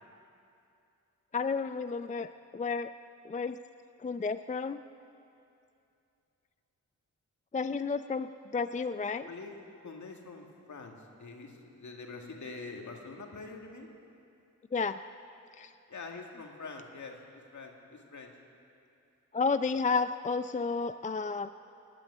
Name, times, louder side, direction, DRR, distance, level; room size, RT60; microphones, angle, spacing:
voice 1, 1.3-2.9 3.2-3.6 4.0-4.8 7.5-9.3 14.7-15.0 15.6-15.7 19.3-21.5, left 4 dB, 25° left, 11 dB, 0.4 m, -32 dB
voice 2, 9.2-9.6 9.8-13.9 15.9-17.2 17.5-18.3, left 3 dB, 60° left, 2 dB, 2.2 m, -45 dB
19.0 x 9.0 x 8.5 m, 2.6 s
cardioid pair, 50°, 33 cm